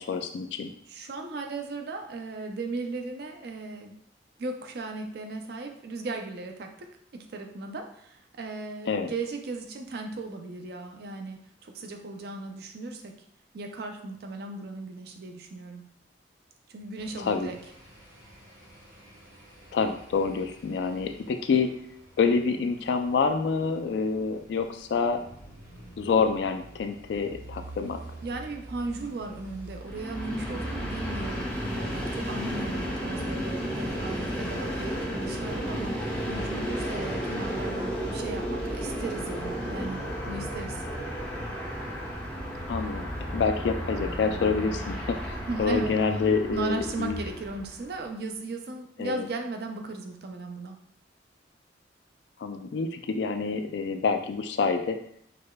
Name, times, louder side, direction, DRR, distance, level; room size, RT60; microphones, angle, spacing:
voice 1, 0.0-0.7 8.9-9.1 17.2-17.5 19.7-21.7 22.2-25.2 26.0-28.0 42.7-47.2 49.0-49.3 52.4-55.0, left 5 dB, 65° left, 7 dB, 0.3 m, -27 dB
voice 2, 0.9-3.9 4.4-6.9 7.1-13.1 13.5-15.9 16.7-17.6 28.2-40.8 45.5-46.0 46.5-50.8, right 3 dB, 55° right, 4 dB, 0.4 m, -36 dB
sound 1, 17.0-35.0, right 1 dB, 85° right, 1.2 m, -49 dB
Train, 29.8-47.9, equal, 5° left, 0.5 m, -33 dB
4.8 x 2.2 x 2.2 m, 0.69 s
head